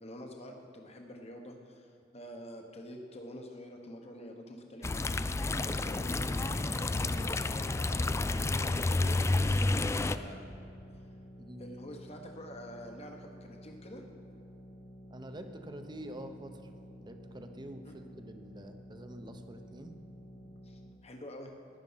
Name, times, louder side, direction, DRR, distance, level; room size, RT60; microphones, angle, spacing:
voice 1, 0.0-5.1 5.5-6.2 6.7-10.4 10.9-11.0 11.6-14.1 17.8-17.9 20.6-21.5, equal, 35° left, 3 dB, 1.1 m, -47 dB
sound 1, 4.8-10.2, left 2 dB, 15° left, 0.3 m, -30 dB
sound 2, 4.9-20.9, equal, 90° left, 2.1 m, -52 dB
voice 2, 11.4-11.7 15.1-16.7 17.0-20.0, right 1 dB, 25° right, 7 dB, 0.9 m, -46 dB
15.0 x 10.5 x 5.7 m, 2.5 s
head